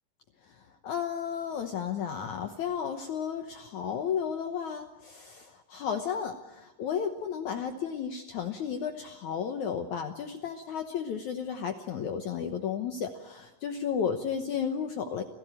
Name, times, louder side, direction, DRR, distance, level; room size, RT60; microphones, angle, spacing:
voice 1, 0.8-15.2, left 7 dB, 75° left, 6 dB, 1.7 m, -33 dB
28.0 x 16.5 x 8.9 m, 1.1 s
omnidirectional pair, 4.9 m